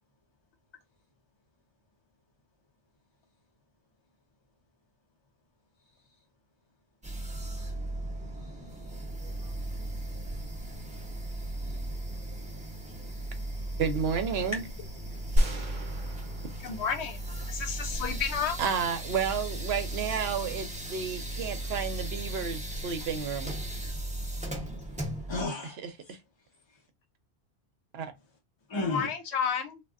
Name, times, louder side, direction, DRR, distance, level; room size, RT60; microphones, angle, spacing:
voice 1, 5.8-6.3 8.3-9.0 11.2-11.9 14.4-14.6 15.1-15.2 25.3-26.9 28.7-29.1, left 2 dB, 45° left, 0.3 m, -38 dB
sound 1, 7.0-25.5, right 1 dB, 10° right, 0.5 m, -37 dB
voice 2, 13.8-14.6 18.6-23.6 27.9-28.1, right 6 dB, 70° right, 0.8 m, -31 dB
sound 2, 15.4-17.7, equal, 40° right, 0.8 m, -30 dB
voice 3, 16.6-17.2 17.5-18.6 28.9-29.8, left 7 dB, 70° left, 0.9 m, -31 dB
3.5 x 2.2 x 2.3 m
omnidirectional pair, 1.2 m